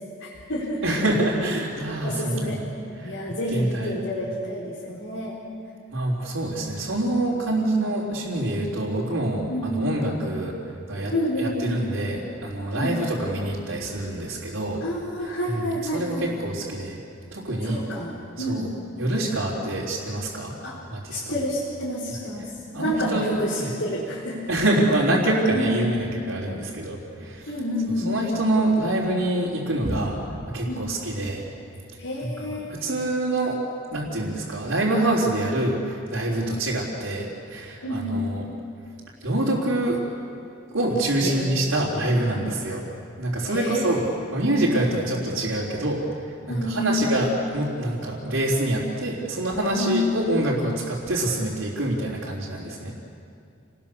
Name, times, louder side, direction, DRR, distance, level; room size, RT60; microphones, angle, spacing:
voice 1, 0.2-0.8 2.0-2.6 3.0-5.4 7.5-7.8 9.5-9.9 11.1-11.8 12.7-13.0 14.8-16.3 17.6-18.1 18.4-18.7 20.6-20.8 21.1-22.5 22.8-24.4 25.5-25.9 27.5-28.1 30.7-30.9 32.0-32.7 36.3-36.5 37.8-38.3 41.2-41.4 43.5-44.0 44.7-45.0 46.5-47.1 49.8-50.0, left 1 dB, 85° left, -7 dB, 4.1 m, -29 dB
voice 2, 0.8-2.7 2.9-3.2 3.5-3.9 5.9-10.5 10.9-11.1 11.4-14.8 15.5-15.6 15.9-17.0 17.3-17.8 18.4-18.7 19.0-20.6 20.9-21.3 22.7-23.7 24.5-27.5 28.0-31.5 32.2-33.6 33.9-38.4 39.2-40.0 40.7-42.8 43.2-52.9, right 1 dB, 90° right, -7 dB, 3.7 m, -26 dB
29.5 x 19.5 x 7.0 m, 2.5 s
head